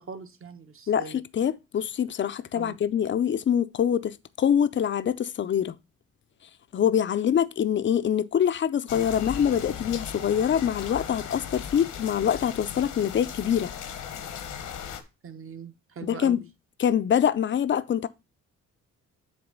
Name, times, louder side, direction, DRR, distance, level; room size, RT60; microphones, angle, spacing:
voice 1, 0.0-1.2 2.5-2.8 15.2-16.4, right 6 dB, 45° right, 1.2 m, -41 dB
voice 2, 0.9-5.7 6.7-13.7 16.0-16.4 16.8-18.1, left 9 dB, 40° left, 0.5 m, -25 dB
sound 1, 8.9-15.0, left 8 dB, 80° left, 1.1 m, -37 dB
7.9 x 3.2 x 5.2 m
cardioid pair, 85°, 30 cm